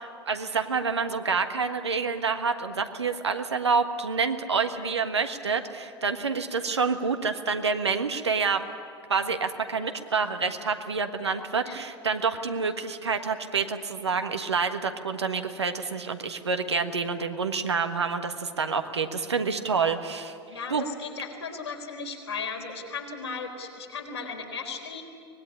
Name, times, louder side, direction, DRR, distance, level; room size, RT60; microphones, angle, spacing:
voice 1, 0.0-8.6 9.1-20.3 20.7-20.8, right 5 dB, 85° right, 7 dB, 1.5 m, -28 dB
voice 2, 20.5-25.0, left 5 dB, 85° left, 0 dB, 4.3 m, -36 dB
24.5 x 19.5 x 9.8 m, 2.4 s
figure-of-eight pair, 85°, 14 cm